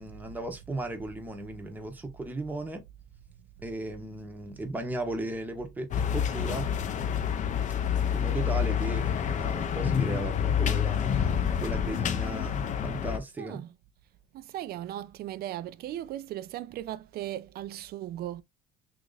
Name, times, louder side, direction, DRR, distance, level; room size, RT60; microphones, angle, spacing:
voice 1, 0.0-2.8 3.6-6.7 8.1-13.6, right 2 dB, 10° right, 0.8 m, -36 dB
sound 1, 5.9-13.2, left 8 dB, 40° left, 0.5 m, -28 dB
voice 2, 13.4-13.7 14.3-18.4, right 13 dB, 55° right, 0.4 m, -37 dB
2.9 x 2.5 x 3.8 m
cardioid pair, 100°, 20 cm